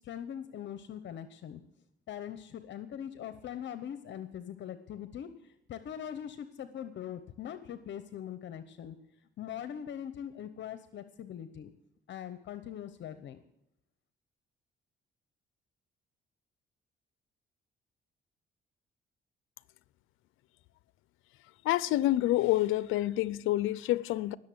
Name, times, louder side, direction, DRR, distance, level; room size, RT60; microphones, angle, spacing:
voice 1, 0.0-1.6 2.1-9.0 9.4-11.7 12.1-13.4, left 9 dB, 65° left, 0.9 m, -42 dB
voice 2, 21.6-24.4, left 15 dB, 85° left, 0.5 m, -28 dB
19.0 x 6.9 x 7.8 m
cardioid pair, 90°, 20 cm